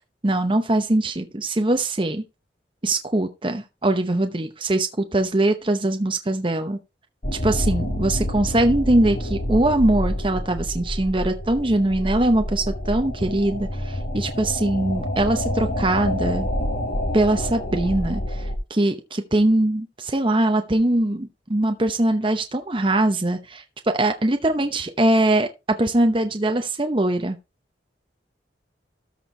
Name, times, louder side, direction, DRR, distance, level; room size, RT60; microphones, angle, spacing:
voice 1, 0.2-2.2 2.8-6.8 7.4-16.5 17.1-18.4 18.7-23.6 23.9-25.5 25.8-27.4, right 1 dB, 25° right, 0.8 m, -22 dB
sound 1, 7.2-18.6, left 1 dB, 45° left, 1.7 m, -27 dB
13.5 x 4.5 x 4.4 m
head